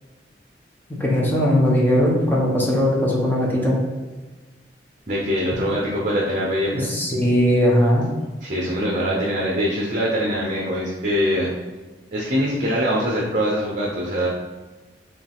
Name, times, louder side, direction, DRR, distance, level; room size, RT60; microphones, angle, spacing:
voice 1, 0.9-3.8 6.7-8.1, equal, 10° left, -3 dB, 0.9 m, -19 dB
voice 2, 5.1-7.0 8.4-11.5 12.1-14.3, equal, 45° right, -4 dB, 0.7 m, -23 dB
4.9 x 3.1 x 3.5 m, 1.3 s
head